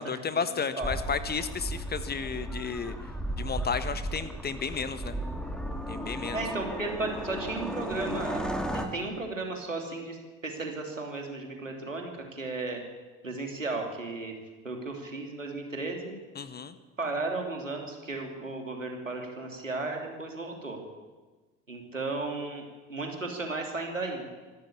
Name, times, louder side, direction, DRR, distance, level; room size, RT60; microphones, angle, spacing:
voice 1, 0.0-2.9 3.4-5.1 5.9-6.4 16.3-16.8, left 6 dB, 25° left, 12 dB, 1.5 m, -33 dB
voice 2, 0.5-0.9 6.3-8.4 8.7-12.8 13.2-14.3 14.6-16.1 17.0-20.8 21.7-22.6 22.9-24.3, right 3 dB, 85° right, 2 dB, 3.0 m, -35 dB
sound 1, 0.8-8.9, right 1 dB, ahead, 2.8 m, -35 dB
24.5 x 13.0 x 8.7 m, 1.3 s
figure-of-eight pair, 60°, 37 cm